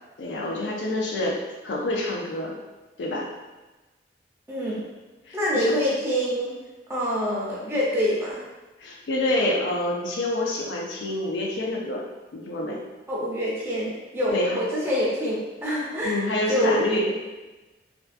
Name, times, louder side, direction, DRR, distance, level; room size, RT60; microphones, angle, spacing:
voice 1, 0.2-1.4 1.6-2.6 3.0-3.3 5.3-5.7 8.8-12.0 12.3-12.8 14.3-14.6 16.0-17.1, left 1 dB, 80° left, -2 dB, 0.4 m, -27 dB
voice 2, 4.5-4.8 5.3-6.5 6.9-8.4 13.1-16.2 16.5-16.8, equal, 15° right, -7 dB, 0.5 m, -25 dB
2.5 x 2.3 x 2.4 m, 1.1 s
head